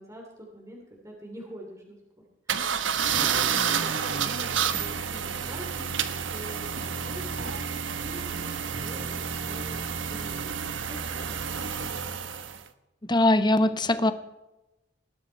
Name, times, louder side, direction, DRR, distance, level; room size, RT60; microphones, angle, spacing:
voice 1, 0.0-2.0 2.5-9.8 10.1-12.2, equal, 15° right, -1 dB, 2.9 m, -45 dB
sound 1, 2.5-12.6, right 7 dB, 75° right, 1.1 m, -30 dB
voice 2, 13.0-14.1, left 1 dB, 25° left, 11 dB, 0.9 m, -21 dB
19.5 x 12.0 x 4.5 m, 1.0 s
head